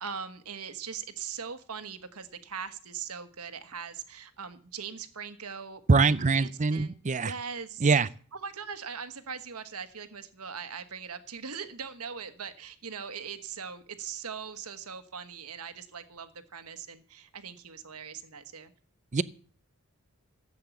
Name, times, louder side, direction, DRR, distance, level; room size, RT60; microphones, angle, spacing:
voice 1, 0.0-6.9 7.2-7.9 8.3-18.7, right 6 dB, 85° right, 1.4 m, -40 dB
voice 2, 5.9-7.3 7.8-8.1 19.1-19.2, right 4 dB, 35° right, 0.5 m, -23 dB
15.0 x 8.5 x 7.2 m
head